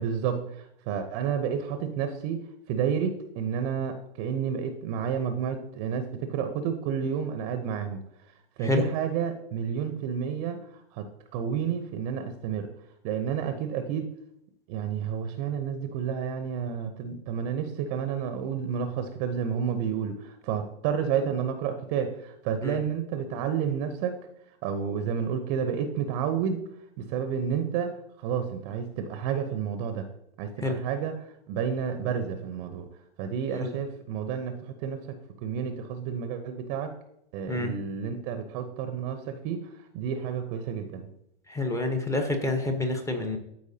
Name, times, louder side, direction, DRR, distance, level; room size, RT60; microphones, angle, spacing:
voice 1, 0.0-2.4 2.7-8.0 8.6-11.1 11.3-12.7 13.0-14.1 14.7-24.2 24.6-26.6 27.0-30.1 30.4-32.9 33.2-36.9 37.3-41.1, right 7 dB, 40° right, 8 dB, 0.8 m, -30 dB
voice 2, 41.5-43.4, left 2 dB, 10° left, 5 dB, 1.0 m, -28 dB
13.0 x 4.6 x 2.8 m, 0.77 s
hypercardioid pair, 115°, 29 cm